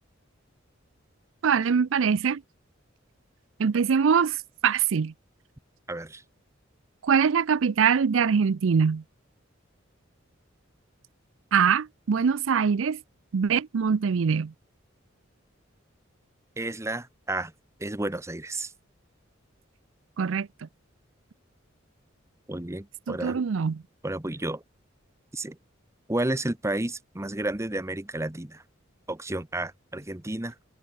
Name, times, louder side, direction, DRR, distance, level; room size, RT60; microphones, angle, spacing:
voice 1, 1.4-2.4 3.6-5.1 7.0-9.0 11.5-13.0 13.3-14.5 20.2-20.5 23.1-23.8, right 6 dB, 75° right, 0.5 m, -23 dB
voice 2, 5.9-6.2 16.6-17.5 17.8-18.7 22.5-23.4 24.0-24.6 25.3-25.6 26.1-28.6 29.1-30.5, right 1 dB, 15° right, 1.0 m, -31 dB
head